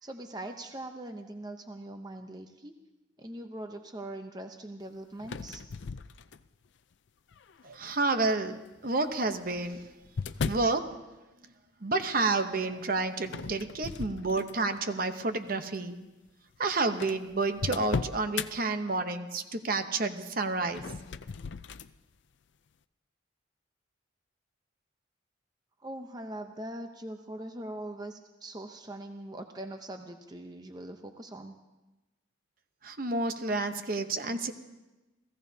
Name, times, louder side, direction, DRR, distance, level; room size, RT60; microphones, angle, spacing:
voice 1, 0.0-2.7 3.2-5.6 25.8-31.5, right 1 dB, 20° right, 5 dB, 0.7 m, -41 dB
sound 1, 5.2-6.7 7.3-7.8 8.8-10.8 13.2-14.8 15.3-15.5 16.3-16.4 16.6-16.7 17.0-18.5 20.6-21.9, left 5 dB, 70° left, 0.5 m, -37 dB
voice 2, 7.6-9.9 10.4-10.9 11.8-16.0 16.6-20.9 32.8-34.5, right 3 dB, 45° right, 8 dB, 0.9 m, -30 dB
29.5 x 16.5 x 2.8 m, 1.1 s
head